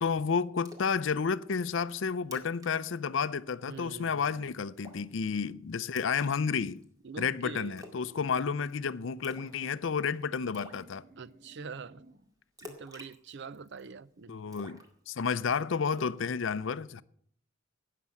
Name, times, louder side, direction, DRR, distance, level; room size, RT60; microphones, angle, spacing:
voice 1, 0.0-6.8 7.2-11.0 14.3-17.0, left 6 dB, 65° left, 0.5 m, -31 dB
Splash splatter, 0.7-1.0 1.4-1.5 1.9-2.0 2.2-2.7 3.0-3.2 3.5-3.9 4.8-5.1 6.0-6.8 7.8-8.1 8.3-8.7 9.2-9.6 9.9-10.0 10.5-10.8 12.6-13.9 14.5-15.4 15.9-16.2, left 1 dB, 20° right, 2.0 m, -49 dB
voice 2, 3.7-4.5 7.0-7.8 11.2-12.0 12.6-14.4, right 5 dB, 60° right, 0.5 m, -44 dB
sound 1, 7.2-9.5 10.1-12.3, right 1 dB, 45° right, 1.1 m, -58 dB
17.0 x 6.7 x 7.1 m
head